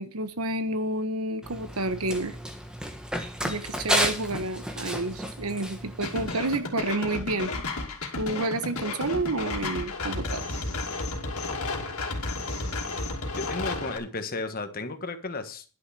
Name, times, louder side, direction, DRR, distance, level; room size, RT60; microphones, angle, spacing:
voice 1, 0.0-2.3 3.4-7.5 8.2-10.4, right 2 dB, 85° right, 11 dB, 1.2 m, -30 dB
Run, 1.4-6.6, equal, 5° right, 1.3 m, -32 dB
sound 1, 6.0-14.0, left 3 dB, 85° left, 2.5 m, -32 dB
voice 2, 11.5-12.4 13.4-15.6, left 3 dB, 40° left, 8 dB, 1.3 m, -35 dB
11.0 x 6.8 x 6.3 m, 0.37 s
head